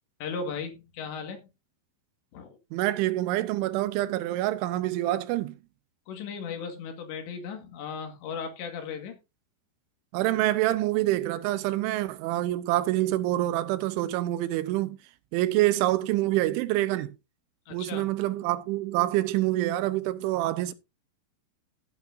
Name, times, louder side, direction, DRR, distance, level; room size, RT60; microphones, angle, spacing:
voice 1, 0.2-1.5 2.3-2.6 6.1-9.2 17.7-18.1, left 5 dB, 70° left, 4.0 m, -36 dB
voice 2, 2.7-5.6 10.1-15.0 15.3-17.1 17.7-20.7, right 15 dB, 90° right, 3.2 m, -26 dB
16.5 x 8.4 x 2.7 m
omnidirectional pair, 5.4 m